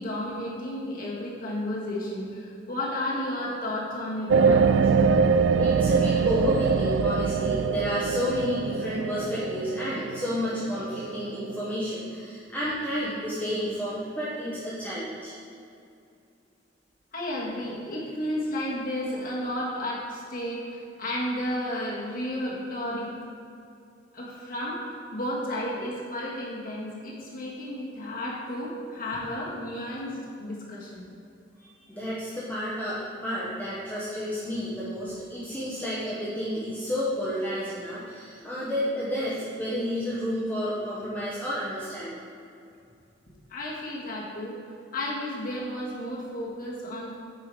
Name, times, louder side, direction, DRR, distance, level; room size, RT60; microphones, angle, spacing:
voice 1, 0.0-4.6 17.1-23.1 24.1-31.1 43.5-44.6 44.9-47.2, left 1 dB, 50° left, -6 dB, 1.8 m, -32 dB
sound 1, 4.3-11.7, right 5 dB, 85° right, 0.3 m, -24 dB
voice 2, 4.5-5.3 5.6-15.3 31.6-42.2, equal, 10° left, -8 dB, 1.1 m, -31 dB
9.5 x 4.9 x 4.9 m, 2.6 s
head